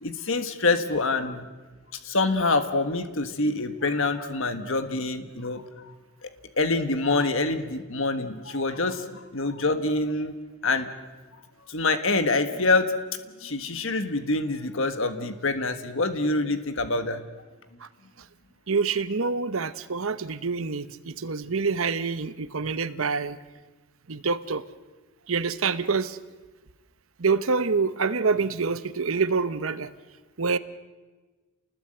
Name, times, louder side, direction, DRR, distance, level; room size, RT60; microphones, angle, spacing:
voice 1, 0.0-1.5 2.0-5.6 6.2-6.3 6.6-9.0 9.3-10.3 10.6-10.9 11.7-12.9 13.4-17.2, left 3 dB, 60° left, 8 dB, 1.5 m, -26 dB
voice 2, 18.7-23.4 24.1-24.6 25.3-26.2 27.2-29.9 30.4-30.6, right 4 dB, 65° right, 13 dB, 0.9 m, -26 dB
29.0 x 20.0 x 7.9 m, 1.3 s
head